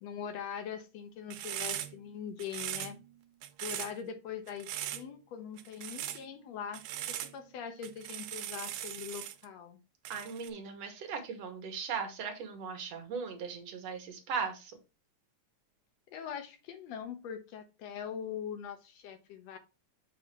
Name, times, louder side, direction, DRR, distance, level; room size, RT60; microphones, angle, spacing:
voice 1, 0.0-3.0 3.6-9.8 16.1-19.6, left 8 dB, 70° left, 7 dB, 1.8 m, -42 dB
sound 1, 1.3-2.1 2.4-3.1 3.4-3.9 4.5-5.1 5.6-6.2 6.7-7.4 7.8-9.5 10.1-10.5, right 12 dB, 85° right, 2.2 m, -39 dB
voice 2, 10.1-14.7, right 5 dB, 60° right, 4 dB, 2.1 m, -38 dB
7.4 x 2.8 x 5.9 m, 0.29 s
omnidirectional pair, 3.5 m